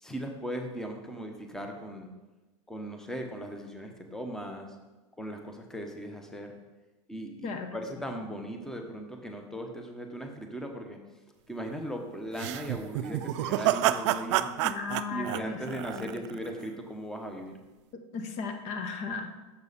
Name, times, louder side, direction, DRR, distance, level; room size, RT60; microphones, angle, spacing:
voice 1, 0.0-2.1 2.7-4.7 5.2-6.5 7.1-11.0 11.5-14.5 15.1-17.5, right 1 dB, 5° left, 4 dB, 0.9 m, -38 dB
voice 2, 7.4-7.8 14.6-16.3 17.9-19.3, left 5 dB, 45° left, 7 dB, 0.8 m, -36 dB
sound 1, 12.4-16.5, right 13 dB, 65° right, 0.4 m, -29 dB
6.8 x 6.8 x 4.1 m, 1.1 s
hypercardioid pair, 110°, 16 cm